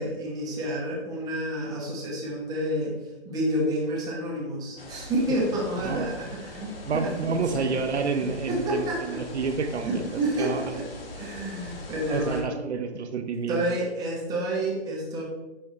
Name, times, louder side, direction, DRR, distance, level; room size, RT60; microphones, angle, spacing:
voice 1, 0.0-2.9 3.2-7.6 8.5-9.2 9.8-10.8 11.2-12.5 13.5-15.2, right 1 dB, 10° right, -3 dB, 1.1 m, -29 dB
sound 1, 4.8-12.4, left 2 dB, 55° left, 1.6 m, -42 dB
voice 2, 5.8-6.2 6.9-10.0 10.4-10.9 12.1-13.8, right 4 dB, 75° right, 8 dB, 0.8 m, -29 dB
10.0 x 3.6 x 3.2 m, 1.1 s
hypercardioid pair, 145°, 34 cm